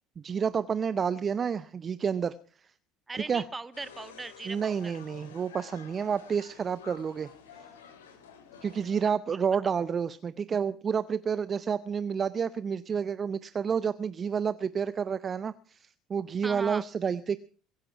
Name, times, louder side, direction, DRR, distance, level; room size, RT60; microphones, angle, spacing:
voice 1, 0.2-2.7 3.1-3.4 4.4-7.3 8.6-17.4, right 6 dB, 35° right, 16 dB, 0.7 m, -30 dB
voice 2, 3.1-4.9 9.6-9.7 16.4-16.9, right 3 dB, 20° right, 13 dB, 1.7 m, -39 dB
sound 1, 3.7-9.0, left 7 dB, 75° left, 3.1 m, -51 dB
22.0 x 10.0 x 5.8 m, 0.42 s
figure-of-eight pair, 65°, 0 cm